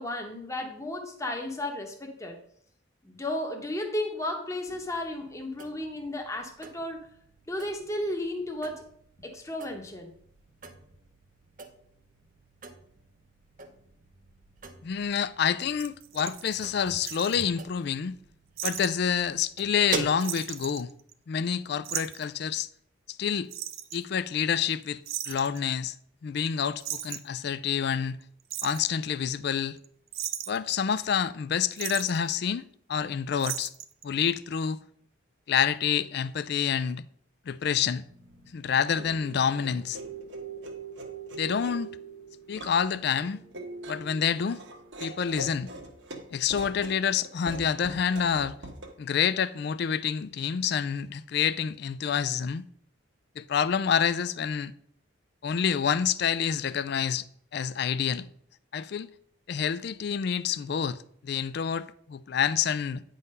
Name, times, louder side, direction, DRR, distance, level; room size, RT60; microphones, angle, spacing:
voice 1, 0.0-2.4 3.0-7.1 7.5-8.8 9.2-10.1, left 1 dB, 15° left, 1.0 m, -34 dB
sound 1, 4.7-20.1, right 4 dB, 40° right, 0.8 m, -44 dB
voice 2, 14.8-18.2 18.6-20.9 21.3-22.7 23.1-23.5 23.9-25.0 25.3-25.9 26.2-28.2 28.6-29.8 30.5-33.7 34.0-34.8 35.5-37.0 37.5-38.0 38.5-40.0 41.3-41.9 42.5-43.4 43.9-44.6 45.0-45.7 46.3-48.5 49.0-52.6 53.4-54.7 55.4-57.2 57.5-58.3 58.7-59.1 59.5-63.0, left 7 dB, 55° left, 0.3 m, -28 dB
sound 2, 15.8-17.4 18.6-18.9 19.2-19.3 19.6-19.9 20.2-21.4 21.8-22.3 23.5-24.1 25.1-25.6 26.4-26.5 26.8-27.4 28.2-28.8 29.6-29.9 30.1-30.7 31.8-32.2 33.4-34.0 34.3-34.4, right 12 dB, 85° right, 0.6 m, -36 dB
sound 3, 38.1-48.9, right 3 dB, 60° right, 1.2 m, -43 dB
9.5 x 3.9 x 5.3 m
head